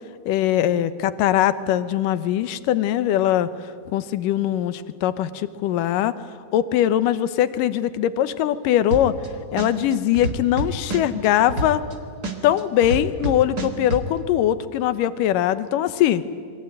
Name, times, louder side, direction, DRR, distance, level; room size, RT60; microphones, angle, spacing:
voice 1, 0.3-3.5 3.9-6.1 6.5-9.1 9.5-11.8 12.4-16.2, left 11 dB, 85° left, 13 dB, 2.6 m, -21 dB
sound 1, 8.9-9.3 9.6-11.9 12.2-14.0, right 1 dB, 35° right, 2.2 m, -27 dB
28.0 x 23.0 x 9.0 m, 2.1 s
omnidirectional pair, 3.7 m